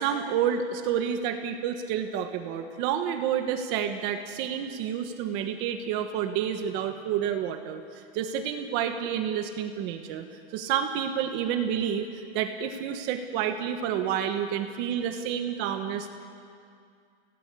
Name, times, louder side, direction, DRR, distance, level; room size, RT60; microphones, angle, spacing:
voice 1, 0.0-10.2 10.5-16.1, right 8 dB, 35° right, 7 dB, 1.3 m, -29 dB
26.0 x 17.5 x 8.4 m, 2.3 s
supercardioid pair, 170°, 32 cm